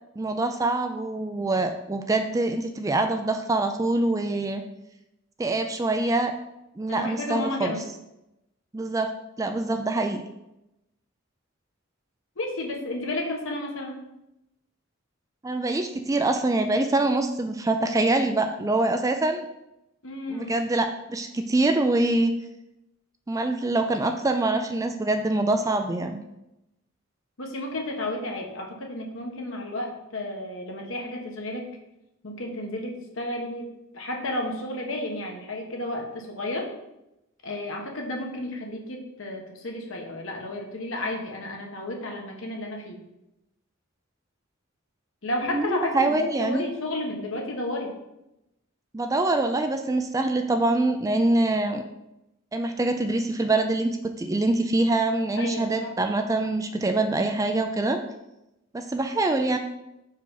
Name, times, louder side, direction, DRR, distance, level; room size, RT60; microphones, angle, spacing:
voice 1, 0.2-4.6 5.4-6.3 6.8-7.7 8.7-9.1 9.4-10.2 15.4-19.5 20.3-22.3 23.3-26.2 45.4-46.6 48.9-51.8 52.5-58.0 58.7-59.6, right 2 dB, 15° right, 6 dB, 0.3 m, -24 dB
voice 2, 6.9-7.8 12.4-14.1 20.0-20.6 27.4-31.7 32.2-36.7 37.4-43.0 45.2-47.9 55.4-55.9, left 1 dB, 65° left, 1 dB, 1.2 m, -32 dB
5.6 x 4.8 x 3.9 m, 0.90 s
head